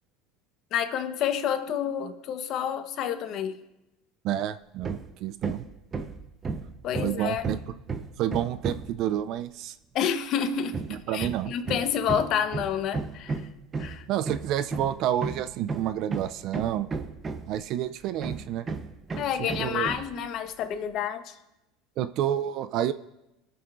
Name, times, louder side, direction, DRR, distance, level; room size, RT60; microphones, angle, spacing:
voice 1, 0.7-3.6 6.8-7.4 9.9-13.4 13.8-14.0 19.2-21.4, left 8 dB, 55° left, 8 dB, 1.0 m, -29 dB
voice 2, 4.2-5.7 7.0-7.6 8.2-9.8 10.9-11.5 14.1-16.9 17.5-18.7 19.6-19.9 22.0-22.9, right 11 dB, 60° right, 13 dB, 0.4 m, -29 dB
Hammer, 4.8-5.1 5.4-9.0 10.7-17.7 18.2-20.1, right 4 dB, 30° right, 0.8 m, -33 dB
20.5 x 6.8 x 2.5 m, 0.96 s
supercardioid pair, 95°, 0 cm